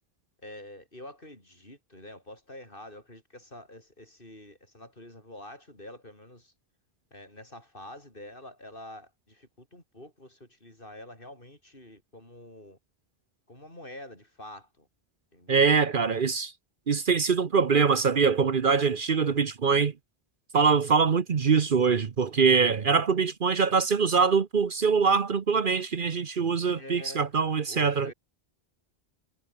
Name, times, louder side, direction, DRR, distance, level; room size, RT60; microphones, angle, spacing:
voice 1, 0.4-6.5 7.1-12.8 13.5-14.9 15.3-15.7 26.7-28.1, left 1 dB, 55° left, 7.6 m, -47 dB
voice 2, 15.5-16.5 16.9-19.9 20.5-28.1, right 5 dB, 55° right, 1.1 m, -23 dB
omnidirectional pair, 1.1 m